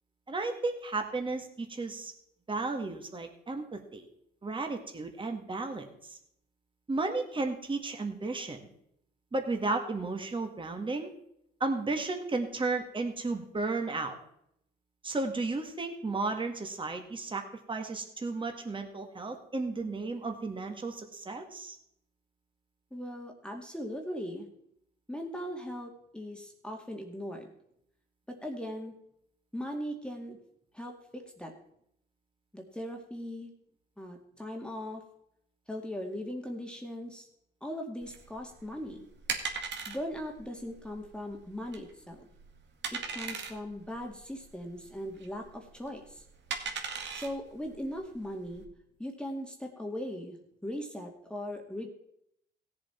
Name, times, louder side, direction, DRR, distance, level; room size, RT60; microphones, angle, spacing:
voice 1, 0.3-2.1 2.5-4.1 4.4-6.2 6.9-8.7 9.3-11.1 11.6-14.2 15.0-21.8, right 3 dB, 25° right, 5 dB, 1.9 m, -34 dB
voice 2, 22.9-24.5 25.1-27.5 28.3-28.9 29.5-30.4 30.7-31.5 32.5-33.5 34.0-35.0 35.7-37.3 37.6-39.0 39.9-42.3 42.9-46.2 47.1-48.6 49.0-50.4 50.6-51.9, equal, 5° left, 2 dB, 2.0 m, -39 dB
sound 1, 38.0-48.6, right 5 dB, 65° right, 2.0 m, -40 dB
16.5 x 7.5 x 4.4 m, 0.74 s
cardioid pair, 90°, 20 cm